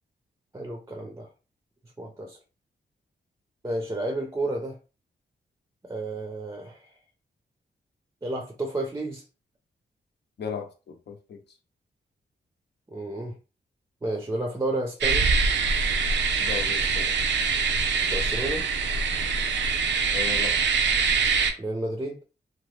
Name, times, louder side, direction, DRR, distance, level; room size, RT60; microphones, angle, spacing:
voice 1, 0.5-1.3 2.0-2.4 3.6-4.8 5.8-6.9 8.2-9.2 12.9-13.3 14.0-15.3 18.1-18.6 21.6-22.2, right 1 dB, 15° right, 0.5 m, -31 dB
voice 2, 10.4-11.4 16.4-17.2 20.1-20.8, left 6 dB, 70° left, 0.7 m, -36 dB
sound 1, 15.0-21.5, right 5 dB, 85° right, 0.5 m, -24 dB
2.9 x 2.1 x 3.1 m
cardioid pair, 90°, 18 cm